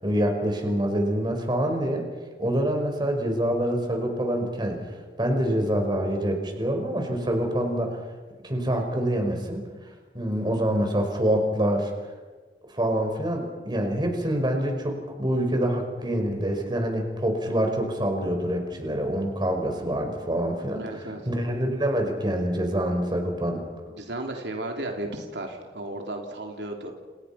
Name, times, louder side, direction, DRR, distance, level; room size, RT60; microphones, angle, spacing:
voice 1, 0.0-2.0 2.4-4.8 5.2-8.0 8.4-9.6 10.1-11.9 12.7-23.6, right 1 dB, 25° right, 3 dB, 5.4 m, -26 dB
voice 2, 20.7-21.2 24.0-26.9, right 1 dB, 85° right, 2 dB, 3.4 m, -34 dB
30.0 x 29.0 x 5.9 m, 1.4 s
head